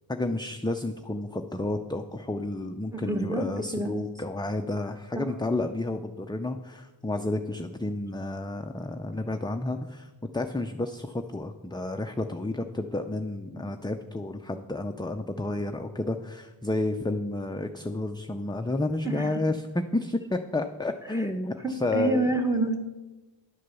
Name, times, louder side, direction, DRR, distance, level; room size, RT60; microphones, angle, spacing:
voice 1, 0.1-22.3, left 2 dB, 10° left, 6 dB, 0.4 m, -31 dB
voice 2, 2.9-3.4 3.7-3.9 5.2-5.3 19.0-19.4 21.1-21.3 21.6-22.8, right 2 dB, 5° right, 6 dB, 1.3 m, -28 dB
11.0 x 6.6 x 6.9 m, 1.1 s
wide cardioid pair, 95°, 46 cm